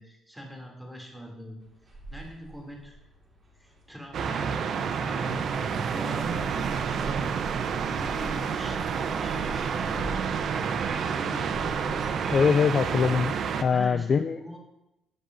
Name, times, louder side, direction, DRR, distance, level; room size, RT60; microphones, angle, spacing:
voice 1, 0.0-1.6 2.1-2.9 3.6-7.6 7.9-10.1 10.4-11.8 13.7-14.6, equal, ahead, -1 dB, 2.9 m, -42 dB
sound 1, 1.6-13.2, right 2 dB, 30° right, 4.6 m, -43 dB
sound 2, 4.1-13.6, right 6 dB, 55° right, 0.8 m, -29 dB
voice 2, 12.3-14.4, left 6 dB, 35° left, 9 dB, 0.4 m, -23 dB
17.5 x 11.0 x 2.7 m, 0.88 s
cardioid pair, 140°, 0 cm